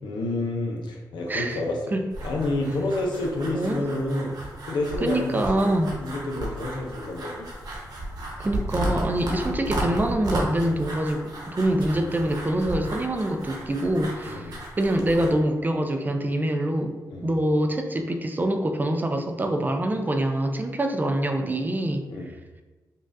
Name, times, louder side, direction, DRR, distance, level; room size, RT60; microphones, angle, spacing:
voice 1, 0.0-1.8 2.2-4.4 4.6-7.5 14.3-14.6 17.1-17.3 22.1-22.3, left 2 dB, 90° left, 0 dB, 0.7 m, -29 dB
voice 2, 1.3-1.6 1.9-2.0 3.5-3.9 5.0-5.9 8.4-22.0, right 1 dB, 25° right, 5 dB, 0.4 m, -25 dB
sound 1, 2.1-15.3, right 1 dB, 60° right, 1.1 m, -34 dB
5.2 x 2.4 x 2.6 m, 1.2 s
cardioid pair, 80°, 7 cm